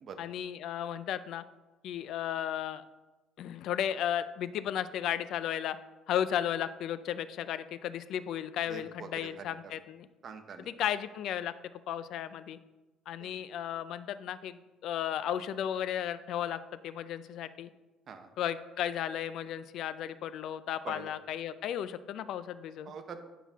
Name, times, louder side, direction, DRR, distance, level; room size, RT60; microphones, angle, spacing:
voice 1, 0.2-1.4 1.8-2.8 3.4-5.8 6.1-10.1 10.6-11.5 11.9-12.6 13.1-17.7 18.4-22.9, left 10 dB, 65° left, 13 dB, 0.4 m, -34 dB
voice 2, 8.7-9.1 9.4-9.5 10.2-10.7 13.2-13.3 18.1-18.3 20.8-21.1 22.9-23.2, right 6 dB, 45° right, 6 dB, 0.8 m, -44 dB
9.2 x 5.8 x 3.5 m, 1.1 s
cardioid pair, 135°, 0 cm